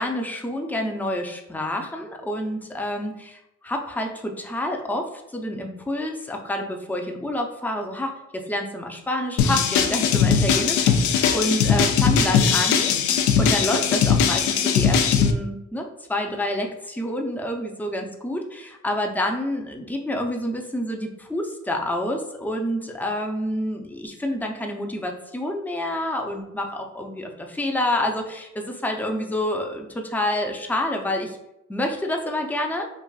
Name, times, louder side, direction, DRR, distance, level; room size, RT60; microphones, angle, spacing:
voice 1, 0.0-13.0 13.4-31.4 31.7-32.9, left 1 dB, 5° left, 2 dB, 0.5 m, -28 dB
sound 1, 9.4-15.3, left 7 dB, 75° left, 0.5 m, -20 dB
4.6 x 2.5 x 2.3 m, 0.87 s
cardioid pair, 90°, 30 cm